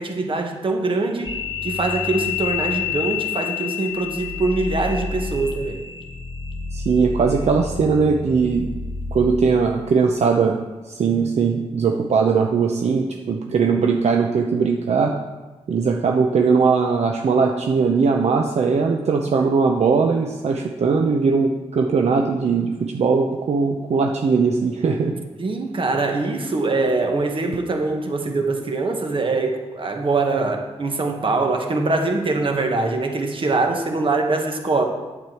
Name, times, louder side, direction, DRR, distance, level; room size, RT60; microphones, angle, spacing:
voice 1, 0.0-1.4 1.6-5.8 25.4-34.8, right 3 dB, 50° right, 3 dB, 1.5 m, -23 dB
sound 1, 1.2-9.8, left 6 dB, 40° left, 1.1 m, -29 dB
voice 2, 6.7-8.7 9.1-10.6 10.9-15.2 15.7-25.2, right 5 dB, 70° right, 2 dB, 0.7 m, -20 dB
8.6 x 8.1 x 4.5 m, 1.2 s
cardioid pair, 75°, 12 cm